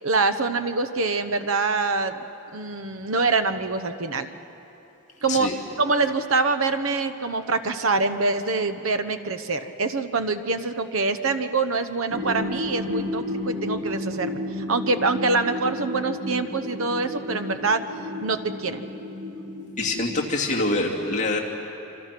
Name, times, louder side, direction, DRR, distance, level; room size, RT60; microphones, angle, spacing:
voice 1, 0.0-2.2 2.5-4.3 5.2-5.5 5.8-17.8 18.2-18.8, right 3 dB, 80° right, 9 dB, 1.0 m, -25 dB
sound 1, 12.1-20.2, left 1 dB, 30° right, 1.7 m, -32 dB
voice 2, 19.8-21.4, left 2 dB, 35° left, -2 dB, 2.6 m, -25 dB
27.0 x 26.0 x 6.0 m, 2.9 s
head